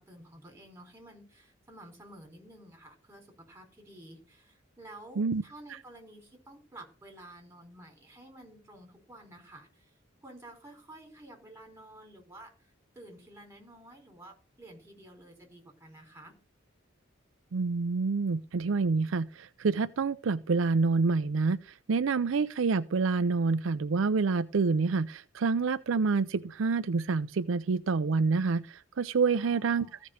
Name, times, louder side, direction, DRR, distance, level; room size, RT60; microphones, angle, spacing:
voice 1, 0.0-9.9 10.2-16.4 29.3-30.0, right 1 dB, 10° right, 4.3 m, -51 dB
voice 2, 17.5-29.9, right 4 dB, 75° right, 0.5 m, -27 dB
15.0 x 5.2 x 6.6 m
head